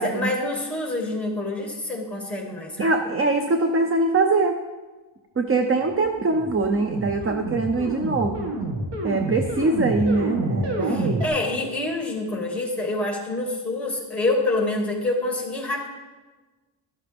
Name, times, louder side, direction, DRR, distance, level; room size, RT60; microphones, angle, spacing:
voice 1, 0.0-2.9 10.8-15.9, left 2 dB, 5° left, 0 dB, 2.4 m, -27 dB
voice 2, 2.8-4.6 5.4-8.4 9.0-11.3, right 3 dB, 30° right, 6 dB, 0.6 m, -23 dB
sound 1, 5.9-11.3, right 1 dB, 55° right, 2.1 m, -29 dB
12.5 x 12.0 x 3.6 m, 1.3 s
wide cardioid pair, 140°, 49 cm